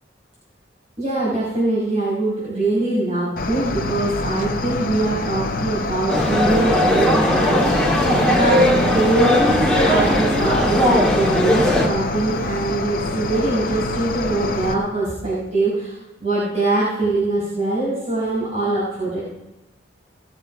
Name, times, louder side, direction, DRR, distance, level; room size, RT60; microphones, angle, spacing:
voice 1, 1.0-8.0 8.3-15.9 16.2-19.2, right 2 dB, 35° right, -10 dB, 5.5 m, -22 dB
Cricket, 3.4-14.7, left 3 dB, 50° left, 1.1 m, -26 dB
sound 1, 6.1-11.9, left 1 dB, 5° left, 2.0 m, -18 dB
18.5 x 7.6 x 5.3 m, 1.0 s
head